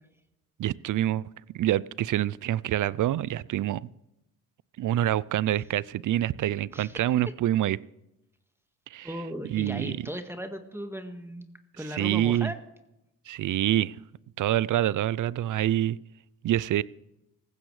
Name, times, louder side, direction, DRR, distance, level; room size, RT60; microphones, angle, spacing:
voice 1, 0.6-1.3 1.5-3.8 4.8-7.8 8.9-9.1 9.5-10.1 11.9-12.5 13.3-14.0 14.4-16.0 16.4-16.8, right 13 dB, 50° right, 0.5 m, -26 dB
voice 2, 9.0-11.5 11.8-12.6, equal, 5° right, 1.7 m, -37 dB
18.5 x 15.5 x 3.3 m
hypercardioid pair, 55°, 39 cm